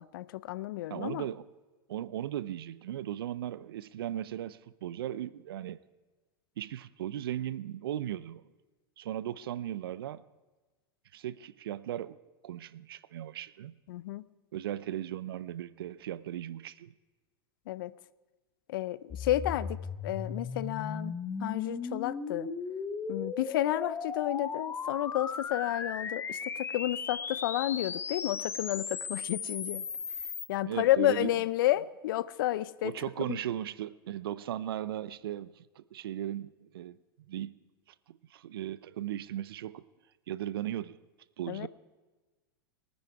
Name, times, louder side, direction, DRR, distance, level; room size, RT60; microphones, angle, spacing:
voice 1, 0.0-1.3 13.9-14.2 17.7-17.9 18.7-19.8 20.0-22.5 23.1-29.8 30.5-32.9 33.3-33.4 41.5-41.7, left 15 dB, 65° left, 19 dB, 0.5 m, -31 dB
voice 2, 0.9-1.4 1.9-5.8 6.6-8.4 9.0-10.2 11.1-12.2 12.4-13.7 14.5-16.9 30.6-31.3 32.8-37.0 37.3-37.6 38.1-39.8 40.3-41.0 41.4-41.7, right 12 dB, 70° right, 18 dB, 0.6 m, -37 dB
sound 1, 19.1-30.5, left 5 dB, 20° left, 0.9 m, -37 dB
22.0 x 9.6 x 4.7 m, 1.3 s
hypercardioid pair, 100°, 13 cm